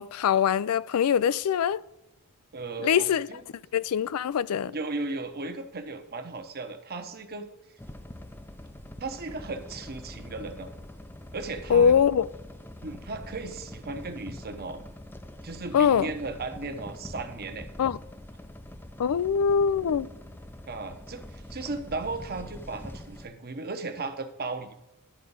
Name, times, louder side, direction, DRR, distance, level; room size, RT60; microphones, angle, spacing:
voice 1, 0.0-1.8 2.8-3.3 3.7-4.7 11.7-12.3 15.7-16.1 17.8-18.0 19.0-20.1, left 7 dB, 70° left, 0.4 m, -23 dB
voice 2, 2.5-3.4 4.7-7.5 9.0-10.7 11.3-12.0 12.8-14.8 15.4-17.7 20.7-24.7, right 3 dB, 45° right, 1.0 m, -36 dB
sound 1, 7.8-23.3, left 1 dB, 10° left, 0.5 m, -44 dB
11.0 x 5.0 x 5.4 m
head